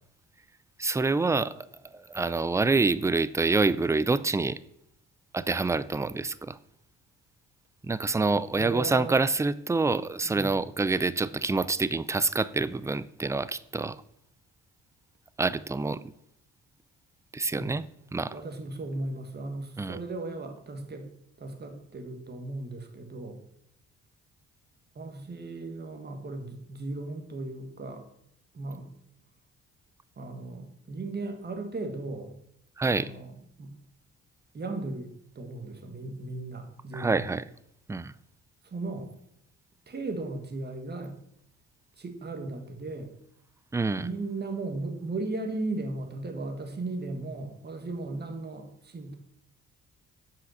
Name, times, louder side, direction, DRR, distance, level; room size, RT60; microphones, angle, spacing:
voice 1, 0.8-1.6 1.9-4.6 5.3-6.6 7.8-14.0 15.4-16.1 17.3-17.8 18.1-18.3 19.8-20.0 32.8-33.1 36.9-37.4 37.9-38.1 43.7-44.1, right 3 dB, 10° right, 17 dB, 0.4 m, -27 dB
voice 2, 8.6-9.2 10.2-10.6 17.5-17.8 18.3-21.1 21.4-23.4 24.9-28.1 28.5-28.9 30.2-32.4 32.9-33.7 34.5-37.3 38.6-39.1 39.9-41.2 42.0-43.2 44.0-49.2, right 2 dB, 35° right, 5 dB, 1.6 m, -36 dB
7.9 x 5.8 x 6.4 m, 0.74 s
cardioid pair, 90°, 30 cm